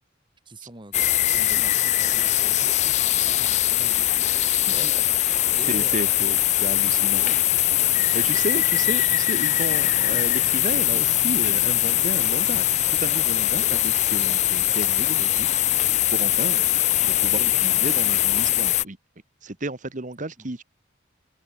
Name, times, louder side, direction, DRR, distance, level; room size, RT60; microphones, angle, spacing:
voice 1, 0.4-4.1 4.7-4.9 5.5-6.1 6.7-8.4 17.5-17.9 20.4-20.5, right 2 dB, 25° right, 3.3 m, -44 dB
sound 1, 0.9-18.8, left 14 dB, 40° left, 0.4 m, -21 dB
voice 2, 5.3-7.2 8.1-15.8 16.1-16.8 17.2-19.0 19.4-20.6, right 2 dB, 45° right, 1.7 m, -33 dB
head